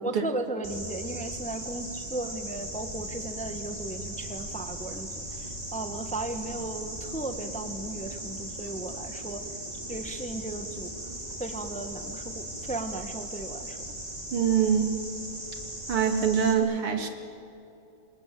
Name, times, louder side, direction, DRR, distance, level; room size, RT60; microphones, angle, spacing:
voice 1, 0.0-9.5 9.9-11.1 11.4-13.8, right 2 dB, 5° left, 7 dB, 1.1 m, -36 dB
sound 1, 0.6-16.5, right 1 dB, 15° right, 3.2 m, -38 dB
voice 2, 14.3-14.9 15.9-17.1, right 7 dB, 90° right, 4 dB, 3.4 m, -24 dB
28.0 x 26.0 x 7.7 m, 2.7 s
omnidirectional pair, 2.4 m